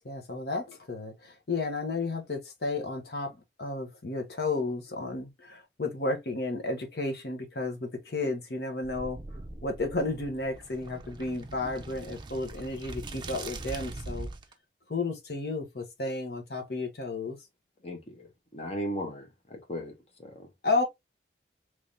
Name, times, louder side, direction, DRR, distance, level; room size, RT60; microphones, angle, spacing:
voice 1, 0.0-9.2 9.6-14.3 14.9-17.4 20.6-20.8, left 3 dB, 60° left, 0.9 m, -32 dB
sound 1, 8.8-14.5, right 2 dB, 25° right, 0.5 m, -42 dB
voice 2, 17.8-20.5, equal, 35° left, 0.8 m, -37 dB
3.5 x 3.1 x 2.6 m
head